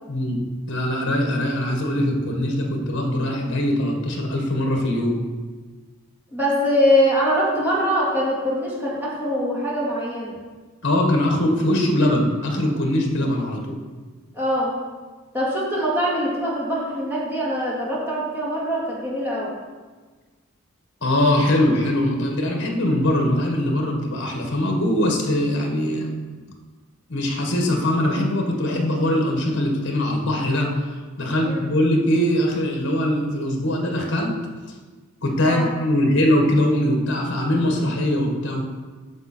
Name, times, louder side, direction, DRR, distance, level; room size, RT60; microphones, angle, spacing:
voice 1, 0.1-5.2 10.8-13.8 21.0-26.1 27.1-30.8 31.2-34.4 35.2-38.6, left 1 dB, 55° left, 1 dB, 1.6 m, -22 dB
voice 2, 6.3-10.4 14.3-14.8 15.3-19.5 31.4-31.7 35.4-35.7, equal, 10° right, -6 dB, 2.3 m, -23 dB
9.4 x 6.6 x 4.4 m, 1.4 s
head